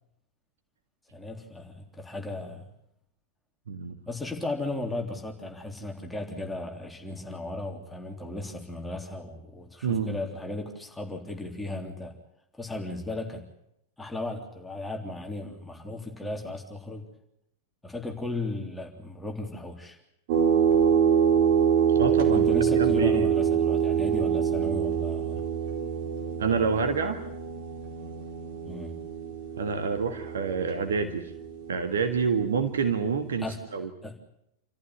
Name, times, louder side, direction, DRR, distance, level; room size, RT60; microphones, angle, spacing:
voice 1, 1.1-2.6 4.1-12.1 12.6-13.4 14.0-17.0 17.8-20.0 22.3-25.4 28.7-29.0 33.4-33.6 34.0-34.2, left 2 dB, 5° left, 1 dB, 3.5 m, -35 dB
voice 2, 9.8-10.2 21.9-23.3 26.4-27.2 29.6-31.3 31.7-33.4 33.7-33.9, right 6 dB, 65° right, 7 dB, 1.8 m, -27 dB
sound 1, 20.3-33.4, right 8 dB, 50° right, 4.2 m, -26 dB
28.5 x 14.5 x 9.8 m, 0.78 s
figure-of-eight pair, 90°, 0 cm